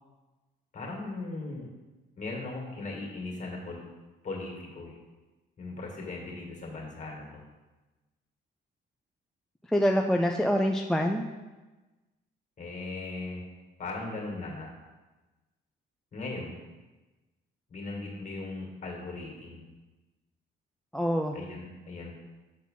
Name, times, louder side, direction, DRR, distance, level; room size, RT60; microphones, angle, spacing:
voice 1, 0.7-1.7 2.2-3.8 4.2-5.0 5.6-7.4 12.6-13.4 13.8-14.7 16.1-16.6 17.7-19.7 21.3-22.2, left 3 dB, 40° left, -1 dB, 2.2 m, -38 dB
voice 2, 9.7-11.3 20.9-21.4, equal, ahead, 2 dB, 0.4 m, -25 dB
7.5 x 4.0 x 5.7 m, 1.2 s
cardioid pair, 90°, 20 cm